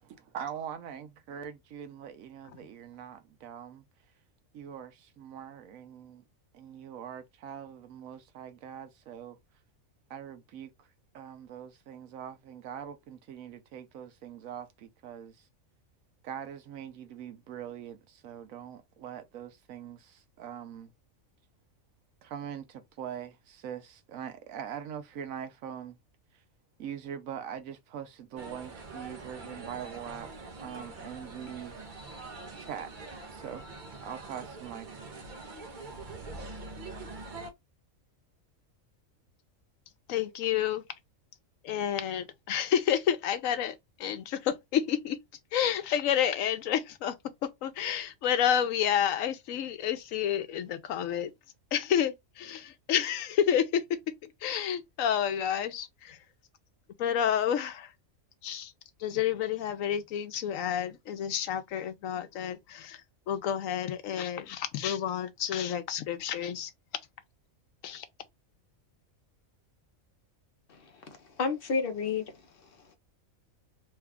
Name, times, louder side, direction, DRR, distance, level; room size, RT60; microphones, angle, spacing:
voice 1, 0.0-3.8 4.5-6.2 6.5-9.4 10.1-10.9 11.1-15.4 16.2-20.9 22.2-26.0 26.8-30.3 30.6-31.8 32.6-32.9 33.3-33.6 34.0-35.1, right 9 dB, 80° right, 1.1 m, -42 dB
sound 1, 28.4-37.5, right 3 dB, 45° right, 0.7 m, -44 dB
voice 2, 40.1-40.8 41.6-45.2 45.5-47.2 47.4-51.3 51.7-56.2 57.0-57.9 58.4-58.7 59.0-66.7 67.8-68.1, left 9 dB, 75° left, 1.0 m, -30 dB
voice 3, 70.7-72.4, left 5 dB, 50° left, 0.8 m, -32 dB
3.2 x 2.3 x 3.5 m
omnidirectional pair, 1.4 m